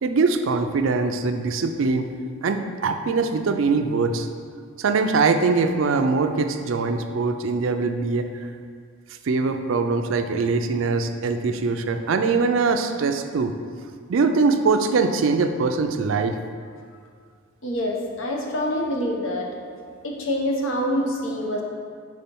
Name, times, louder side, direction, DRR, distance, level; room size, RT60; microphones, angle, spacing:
voice 1, 0.0-2.1 2.4-4.3 4.8-8.5 9.2-13.5 14.1-16.4, right 4 dB, 65° right, 7 dB, 0.4 m, -22 dB
voice 2, 17.6-19.5 20.0-21.6, equal, 70° left, 0 dB, 0.9 m, -26 dB
4.9 x 4.3 x 5.3 m, 2.1 s
head